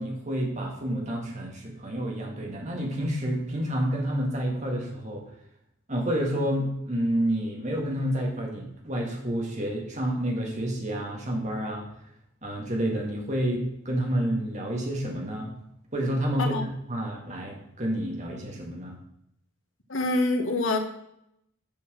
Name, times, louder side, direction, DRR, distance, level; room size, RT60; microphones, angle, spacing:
voice 1, 0.0-5.2 5.9-11.9 12.4-15.5 15.9-16.6 16.9-19.0, equal, 35° right, 0 dB, 2.0 m, -29 dB
voice 2, 19.9-20.8, left 2 dB, 65° left, 4 dB, 1.3 m, -25 dB
7.1 x 6.2 x 6.1 m, 0.76 s
head